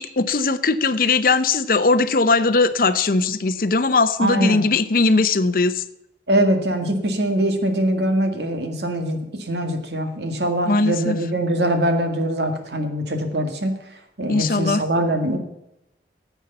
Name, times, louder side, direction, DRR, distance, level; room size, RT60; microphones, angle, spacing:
voice 1, 0.0-5.8 10.7-11.2 14.3-14.8, left 3 dB, 50° left, 12 dB, 0.7 m, -19 dB
voice 2, 4.2-4.6 6.3-13.7 14.2-15.4, right 1 dB, 75° right, 5 dB, 1.9 m, -22 dB
10.0 x 8.1 x 6.8 m, 0.86 s
head